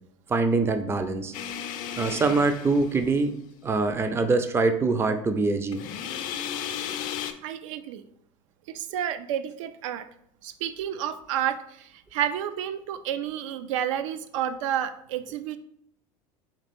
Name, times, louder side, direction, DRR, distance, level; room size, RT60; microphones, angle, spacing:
voice 1, 0.3-1.3 2.0-3.3 3.6-5.8, right 3 dB, 15° right, 8 dB, 0.4 m, -24 dB
sound 1, 1.3-3.4 5.7-7.3, left 9 dB, 55° left, 0.5 m, -34 dB
voice 2, 7.4-8.0 8.7-10.1 10.4-15.6, right 10 dB, 70° right, 11 dB, 0.5 m, -30 dB
4.0 x 2.9 x 4.2 m, 0.70 s
hypercardioid pair, 80°, 17 cm